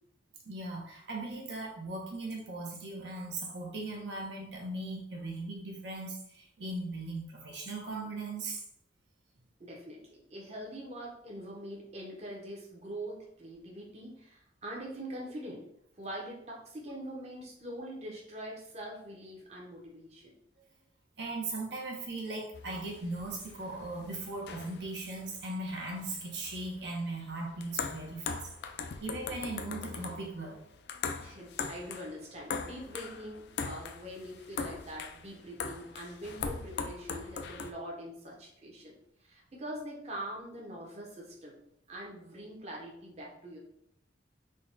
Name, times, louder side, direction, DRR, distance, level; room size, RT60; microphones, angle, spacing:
voice 1, 0.5-8.6 21.2-28.5 28.8-30.6, right 2 dB, 65° right, -1 dB, 0.8 m, -38 dB
voice 2, 9.6-15.7 16.0-20.3 28.9-29.0 31.2-39.0 39.2-41.5 41.9-43.6, right 1 dB, 35° right, -2 dB, 0.8 m, -43 dB
sound 1, 22.5-37.7, left 5 dB, 60° left, 0.3 m, -41 dB
3.8 x 2.2 x 3.8 m, 0.73 s
head